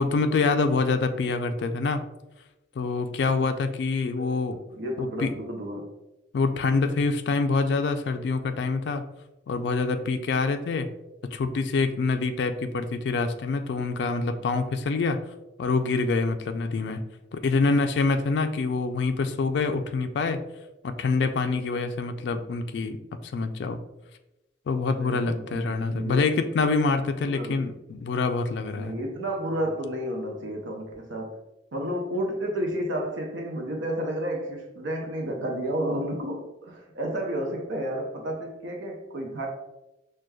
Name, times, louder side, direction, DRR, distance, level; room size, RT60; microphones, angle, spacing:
voice 1, 0.0-2.0 2.8-4.6 5.0-5.3 6.3-9.0 9.5-10.9 11.3-15.2 15.6-17.0 17.3-20.4 20.8-23.0 23.2-23.8 24.7-28.9, left 4 dB, 65° left, 0.3 m, -26 dB
voice 2, 4.2-5.8 25.0-26.2 27.3-27.6 28.8-31.4 31.7-39.5, right 1 dB, 85° right, 0.7 m, -31 dB
6.2 x 2.2 x 2.2 m
head